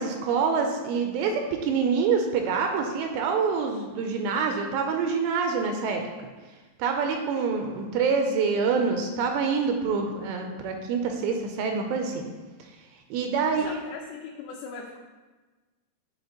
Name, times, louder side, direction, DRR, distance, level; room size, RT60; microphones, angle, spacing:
voice 1, 0.0-6.0 6.8-12.3 13.1-13.8, right 5 dB, 85° right, 4 dB, 2.7 m, -26 dB
voice 2, 13.6-15.0, left 5 dB, 90° left, -1 dB, 3.0 m, -39 dB
10.5 x 4.3 x 2.9 m, 1.3 s
omnidirectional pair, 5.1 m